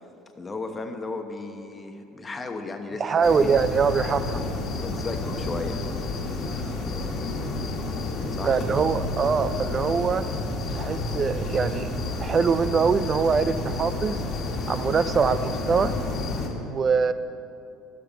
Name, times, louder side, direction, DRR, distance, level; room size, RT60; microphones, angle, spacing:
voice 1, 0.3-3.5 4.8-5.9 8.3-8.6, left 3 dB, 25° left, 6 dB, 1.0 m, -35 dB
voice 2, 3.0-4.4 8.4-10.3 10.7-11.9 12.2-14.2 14.7-15.9 16.6-17.1, right 5 dB, 35° right, 13 dB, 0.3 m, -23 dB
sound 1, 3.2-16.5, left 2 dB, 45° left, 1.7 m, -30 dB
12.0 x 6.9 x 5.3 m, 2.8 s
hypercardioid pair, 75°, 0 cm